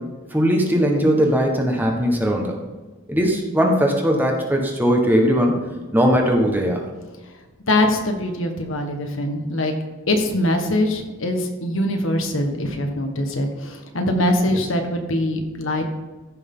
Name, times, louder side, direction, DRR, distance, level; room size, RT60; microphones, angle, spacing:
voice 1, 0.3-2.5 3.1-5.5 5.9-6.8, equal, 10° right, 1 dB, 1.4 m, -19 dB
voice 2, 7.7-9.7 10.1-15.9, left 1 dB, 65° left, 4 dB, 1.5 m, -22 dB
14.5 x 6.3 x 3.8 m, 1.2 s
head